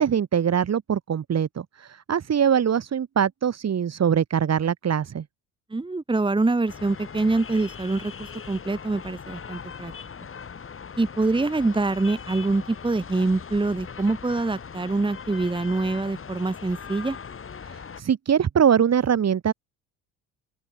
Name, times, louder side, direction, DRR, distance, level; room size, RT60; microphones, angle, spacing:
voice 1, 0.0-5.2 17.6-19.5, right 8 dB, 45° right, 4.9 m, -23 dB
voice 2, 5.7-9.9 11.0-17.2, right 3 dB, 15° right, 2.2 m, -25 dB
sound 1, 6.7-18.0, left 6 dB, 35° left, 4.5 m, -40 dB
open air
supercardioid pair, 85°, 37 cm